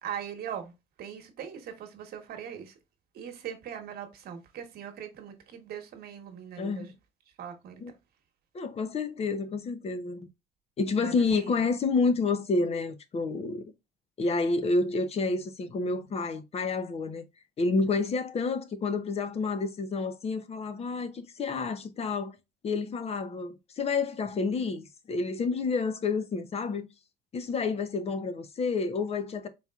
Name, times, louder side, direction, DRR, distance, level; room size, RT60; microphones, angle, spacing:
voice 1, 0.0-0.7 1.0-2.8 3.1-6.9 7.4-7.9 11.0-11.5, right 8 dB, 65° right, 1.2 m, -40 dB
voice 2, 6.6-6.9 7.8-7.9 8.5-10.3 10.8-13.7 14.2-17.2 17.6-22.4 22.6-26.9 27.3-29.5, left 4 dB, 35° left, 0.7 m, -29 dB
4.2 x 3.5 x 2.3 m
cardioid pair, 110°, 17 cm